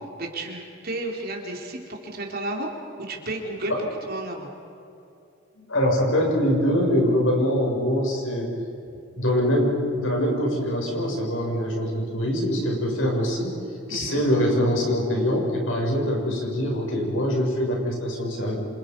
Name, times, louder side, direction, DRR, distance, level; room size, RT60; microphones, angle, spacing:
voice 1, 0.2-2.7 3.0-3.7 4.1-4.5 13.9-14.2, right 2 dB, 50° right, 1 dB, 4.0 m, -32 dB
voice 2, 5.7-8.5 9.1-13.5 13.9-18.6, equal, 80° left, -1 dB, 7.3 m, -23 dB
29.0 x 27.5 x 5.6 m, 2.7 s
head